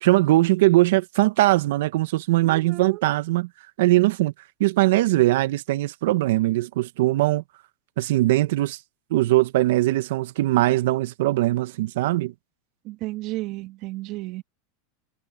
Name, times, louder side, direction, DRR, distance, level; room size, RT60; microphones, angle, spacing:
voice 1, 0.0-3.5 3.8-4.3 4.6-7.4 8.0-8.8 9.1-12.3, right 17 dB, 70° right, 1.4 m, -21 dB
voice 2, 2.4-3.0 12.8-14.4, right 19 dB, 50° right, 2.0 m, -33 dB
hypercardioid pair, 115°, 0 cm